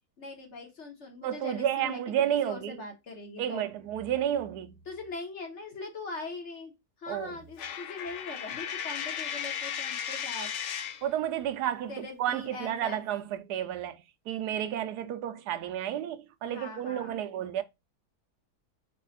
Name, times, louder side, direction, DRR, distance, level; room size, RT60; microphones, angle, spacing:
voice 1, 0.2-2.0 2.4-3.7 4.9-6.7 7.0-10.5 11.9-13.0 16.4-17.2, left 3 dB, 50° left, 1.3 m, -41 dB
voice 2, 1.2-2.8 3.4-4.7 7.1-7.3 11.0-14.0 14.3-17.6, right 10 dB, 90° right, 1.2 m, -31 dB
Coin (dropping), 7.6-11.1, left 8 dB, 70° left, 0.7 m, -35 dB
5.0 x 2.4 x 4.0 m
omnidirectional pair, 1.7 m